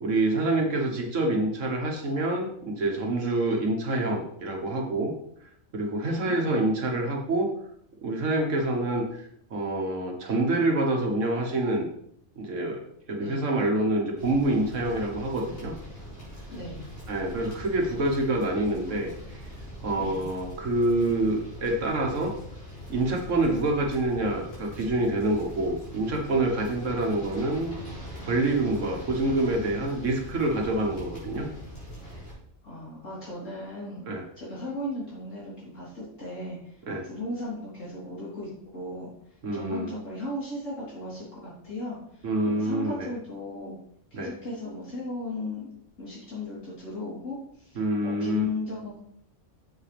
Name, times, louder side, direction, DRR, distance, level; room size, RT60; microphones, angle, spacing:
voice 1, 0.0-5.1 5.7-7.5 8.0-11.9 12.4-12.8 13.1-15.7 17.1-19.1 19.8-22.3 22.9-27.8 28.3-31.5 34.1-34.2 36.9-37.1 39.4-39.9 42.2-43.1 44.1-44.3 47.8-48.5, right 2 dB, 75° right, 2 dB, 1.7 m, -26 dB
voice 2, 6.0-6.3 13.2-13.5 16.5-16.9 20.0-20.3 32.6-34.1 34.4-36.8 37.0-39.1 39.5-43.7 44.1-45.7 46.0-49.0, left 2 dB, 75° left, -8 dB, 4.3 m, -36 dB
sound 1, 14.2-32.3, equal, 50° left, 4.0 m, -42 dB
7.6 x 7.1 x 3.5 m, 0.69 s
omnidirectional pair, 1.3 m